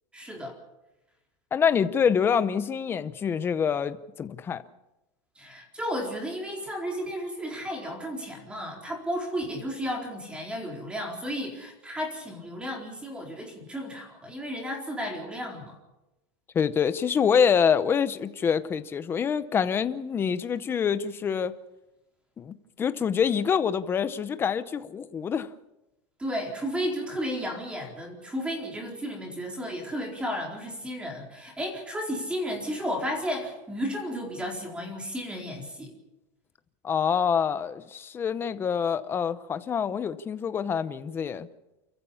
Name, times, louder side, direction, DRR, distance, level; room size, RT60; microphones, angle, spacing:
voice 1, 0.1-0.6 5.4-15.8 26.2-35.9, equal, 5° right, 4.3 m, -33 dB
voice 2, 1.5-4.6 16.5-21.5 22.4-25.5 36.8-41.5, left 7 dB, 15° left, 0.7 m, -26 dB
28.5 x 14.5 x 7.1 m
supercardioid pair, 170°, 15 cm